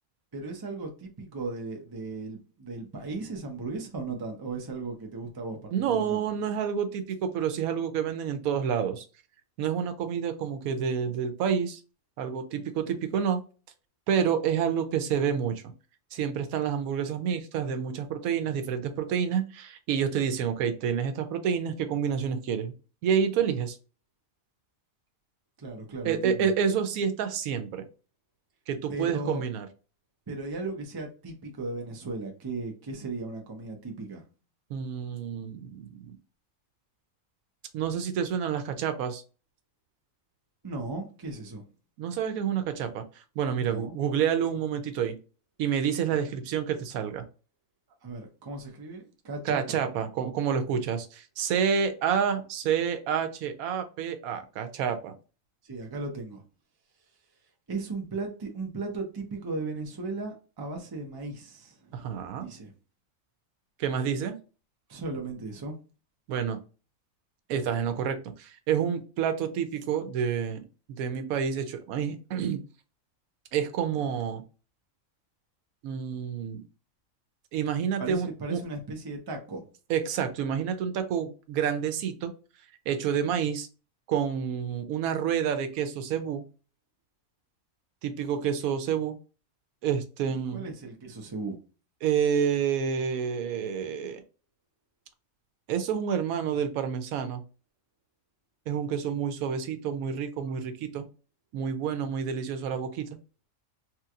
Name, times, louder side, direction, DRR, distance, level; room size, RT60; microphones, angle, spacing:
voice 1, 0.3-6.2 25.6-26.5 28.9-29.4 30.3-34.2 40.6-41.6 43.6-43.9 46.1-46.2 48.0-49.8 55.6-56.4 57.7-61.9 62.4-62.7 64.9-65.8 78.0-79.6 90.3-91.6, right 3 dB, 30° right, 2 dB, 0.4 m, -36 dB
voice 2, 5.7-9.1 9.6-11.8 12.2-13.4 14.1-15.6 16.1-22.7 23.0-23.8 26.0-27.9 28.7-29.7 34.7-36.1 37.7-39.2 42.0-45.2 45.6-47.2 49.4-55.1 61.9-62.5 63.8-64.4 66.3-66.6 67.5-72.6 73.5-74.4 75.8-76.6 77.5-78.6 79.9-82.3 82.9-83.7 84.1-86.4 88.0-89.1 89.8-90.7 92.0-94.2 95.7-97.4 98.7-101.1 101.5-103.1, right 7 dB, 90° right, 8 dB, 1.0 m, -28 dB
3.0 x 2.9 x 2.4 m, 0.35 s
omnidirectional pair, 1.4 m